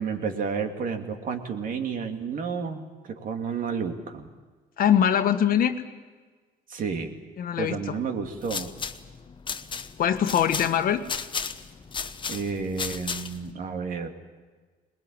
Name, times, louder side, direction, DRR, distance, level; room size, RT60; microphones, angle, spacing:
voice 1, 0.0-4.3 6.7-7.1 7.6-8.7 12.3-14.1, right 5 dB, 55° right, 5 dB, 2.6 m, -31 dB
voice 2, 4.8-5.8 7.4-8.0 10.0-11.0, left 9 dB, 55° left, 9 dB, 1.5 m, -22 dB
sound 1, 8.2-13.5, left 5 dB, 30° left, 1.1 m, -35 dB
21.0 x 20.5 x 8.9 m, 1.4 s
cardioid pair, 110°, 17 cm